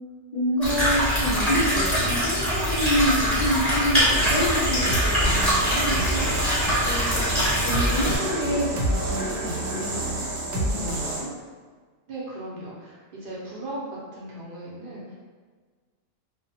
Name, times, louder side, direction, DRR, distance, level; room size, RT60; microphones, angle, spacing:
voice 1, 0.3-6.4 6.7-10.2 10.5-11.3, equal, 60° left, -9 dB, 0.4 m, -28 dB
sound 1, 0.6-8.2, equal, ahead, 0.9 m, -23 dB
sound 2, 4.1-11.2, right 2 dB, 80° right, 0.9 m, -28 dB
voice 2, 12.1-15.1, right 1 dB, 60° right, -6 dB, 0.6 m, -37 dB
2.3 x 2.1 x 2.7 m, 1.5 s
omnidirectional pair, 1.2 m